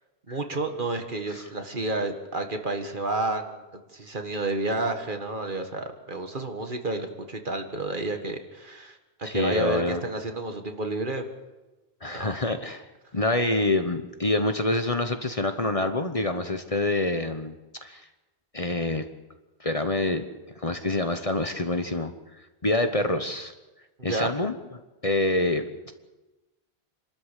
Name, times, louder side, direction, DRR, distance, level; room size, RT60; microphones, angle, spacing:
voice 1, 0.3-3.6 3.9-11.2 12.1-12.3 24.0-24.3, right 2 dB, 50° right, 5 dB, 1.8 m, -30 dB
voice 2, 9.2-10.0 12.0-12.8 13.1-17.5 17.8-18.0 18.5-19.0 19.6-20.2 20.6-22.1 22.6-23.5 24.0-24.5 25.0-25.9, left 2 dB, 35° left, 7 dB, 1.1 m, -26 dB
27.0 x 13.0 x 8.3 m, 1.1 s
omnidirectional pair, 1.1 m